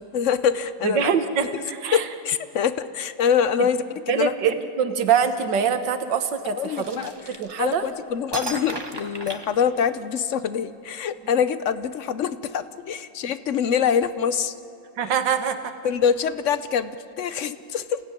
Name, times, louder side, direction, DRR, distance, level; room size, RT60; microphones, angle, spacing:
voice 1, 0.0-1.1 1.9-3.8 4.1-4.3 6.5-7.1 7.6-14.5 15.8-18.0, left 7 dB, 60° left, 13 dB, 0.8 m, -24 dB
voice 2, 0.8-2.1 3.6-3.7 4.1-7.9 15.0-15.7, right 7 dB, 75° right, 9 dB, 1.9 m, -24 dB
sound 1, 6.8-7.9 8.3-10.2, right 2 dB, 15° right, 1.2 m, -34 dB
28.5 x 16.5 x 9.7 m, 2.8 s
omnidirectional pair, 2.0 m